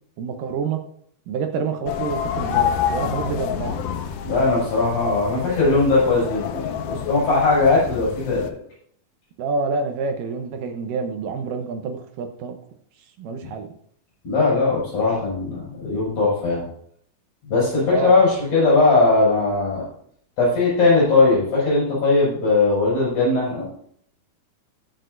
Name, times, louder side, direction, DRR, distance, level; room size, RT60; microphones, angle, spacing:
voice 1, 0.2-0.8 1.3-3.8 9.4-12.6 13.2-13.7 17.8-18.1, right 5 dB, 70° right, 6 dB, 2.3 m, -27 dB
sound 1, 1.9-8.5, left 8 dB, 75° left, 2.1 m, -28 dB
voice 2, 4.2-8.5 14.2-16.6 17.4-19.8 20.4-23.6, left 3 dB, 55° left, -6 dB, 6.6 m, -19 dB
19.0 x 6.5 x 2.6 m, 0.65 s
omnidirectional pair, 4.3 m